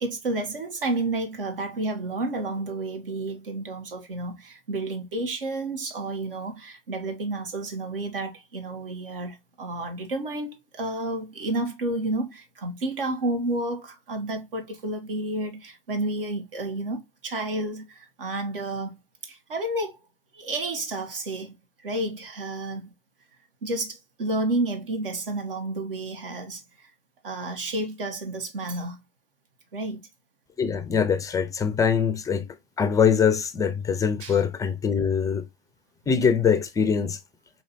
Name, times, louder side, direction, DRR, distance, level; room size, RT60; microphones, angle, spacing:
voice 1, 0.0-20.0 20.3-22.9 23.6-26.9 27.2-29.0 29.7-30.1 34.2-34.4, right 2 dB, 70° right, 1.0 m, -31 dB
voice 2, 30.6-32.4 32.8-35.4 36.1-37.2, left 6 dB, 10° left, 0.4 m, -23 dB
4.8 x 2.9 x 2.8 m
figure-of-eight pair, 90°, 29 cm